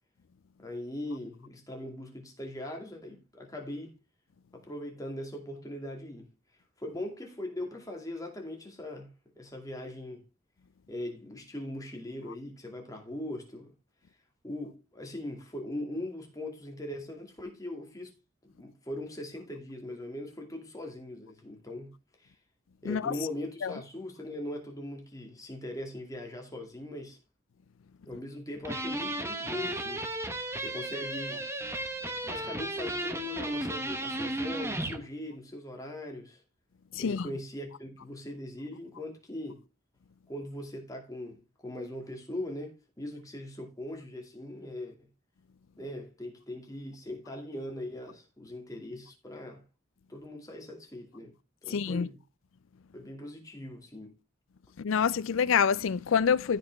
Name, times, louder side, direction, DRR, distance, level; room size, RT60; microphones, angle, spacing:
voice 1, 0.6-4.0 4.5-6.3 6.8-10.2 10.9-13.7 14.4-18.1 18.4-21.9 22.2-22.3 22.8-27.2 28.0-30.0 30.6-31.4 32.2-36.4 37.0-39.6 40.3-45.0 45.8-49.6 50.1-51.3 51.6-52.2 52.9-54.1, left 1 dB, 15° left, 2.4 m, -40 dB
sound 1, 28.6-35.0, right 1 dB, 15° right, 1.1 m, -34 dB
voice 2, 36.9-37.3 51.7-52.1 54.8-56.6, left 7 dB, 75° left, 0.4 m, -26 dB
15.0 x 5.8 x 3.5 m
head